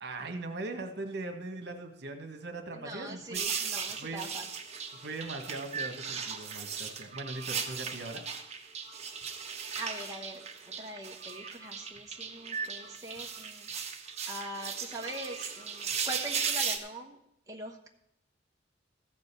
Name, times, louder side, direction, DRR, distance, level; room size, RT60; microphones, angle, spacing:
voice 1, 0.0-4.3 4.9-8.2, right 2 dB, 60° right, 4 dB, 1.6 m, -40 dB
voice 2, 2.7-4.5 9.8-13.7 14.3-17.2 17.5-17.9, right 1 dB, 20° right, 0 dB, 1.2 m, -42 dB
sound 1, 3.3-16.8, right 6 dB, 35° right, 1.3 m, -37 dB
15.0 x 5.4 x 6.9 m, 0.77 s
head